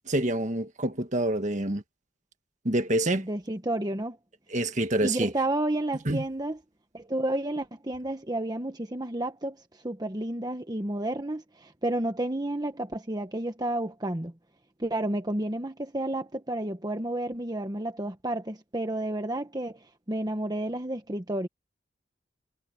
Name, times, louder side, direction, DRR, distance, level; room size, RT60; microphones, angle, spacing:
voice 1, 0.1-1.8 2.6-3.3 4.5-5.3 6.0-6.2, right 1 dB, 40° right, 1.7 m, -27 dB
voice 2, 3.2-4.2 5.0-6.6 6.9-14.3 14.8-21.5, right 1 dB, 20° right, 1.2 m, -31 dB
head